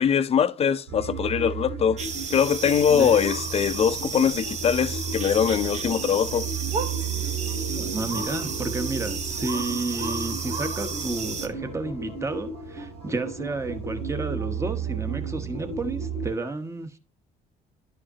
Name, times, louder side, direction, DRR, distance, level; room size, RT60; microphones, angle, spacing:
voice 1, 0.0-2.0 2.3-6.5, left 8 dB, 35° left, 0.6 m, -22 dB
sound 1, 0.9-16.3, right 4 dB, 85° right, 3.5 m, -33 dB
sound 2, 2.0-11.5, right 5 dB, 45° right, 1.1 m, -33 dB
voice 2, 7.8-17.0, right 2 dB, 15° right, 1.1 m, -31 dB
11.0 x 4.9 x 2.8 m
cardioid pair, 110°, 17 cm